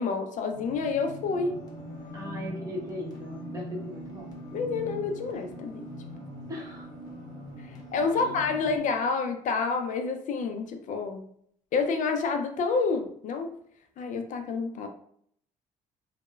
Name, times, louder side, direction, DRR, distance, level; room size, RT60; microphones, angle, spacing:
voice 1, 0.0-1.6 4.5-5.8 7.9-11.2 11.7-13.5 14.0-14.9, left 4 dB, 60° left, 5 dB, 0.4 m, -28 dB
sound 1, 0.5-8.8, equal, 25° left, 0.9 m, -41 dB
voice 2, 2.1-4.3 6.5-6.9 8.1-8.4, left 1 dB, 25° right, -3 dB, 1.0 m, -38 dB
3.0 x 2.0 x 2.2 m, 0.65 s
supercardioid pair, 70°, 14 cm